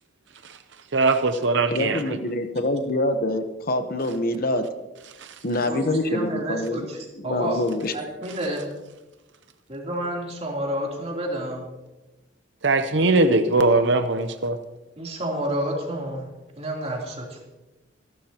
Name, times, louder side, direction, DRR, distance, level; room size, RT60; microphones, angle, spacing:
voice 1, 0.9-2.0 12.6-14.6, right 3 dB, 65° right, 9 dB, 0.7 m, -20 dB
voice 2, 1.7-4.6 5.4-6.8 7.2-7.9, left 1 dB, 50° left, 8 dB, 1.1 m, -25 dB
voice 3, 5.7-7.0 7.2-7.6 7.9-8.7 9.7-11.7 13.2-13.3 15.0-16.3 16.6-17.4, right 1 dB, 35° right, -1 dB, 3.4 m, -29 dB
27.0 x 12.5 x 3.0 m, 1.1 s
head